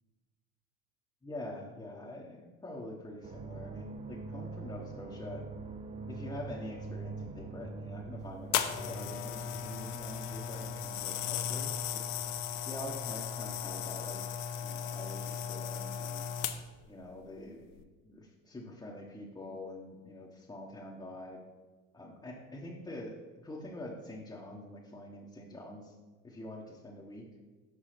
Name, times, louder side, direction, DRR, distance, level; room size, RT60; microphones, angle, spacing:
voice 1, 1.2-5.4 6.1-12.0 12.7-14.2 14.6-16.2 16.9-17.7 18.0-21.4 21.9-23.1 23.4-25.9 26.2-27.2, left 1 dB, 10° left, -4 dB, 1.0 m, -45 dB
sound 1, 3.2-15.4 15.6-16.1, right 4 dB, 20° right, 0.3 m, -46 dB
sound 2, 8.5-16.9 17.6-17.8, left 9 dB, 65° left, 0.6 m, -36 dB
5.9 x 5.9 x 3.3 m, 1.3 s
hypercardioid pair, 75°, 36 cm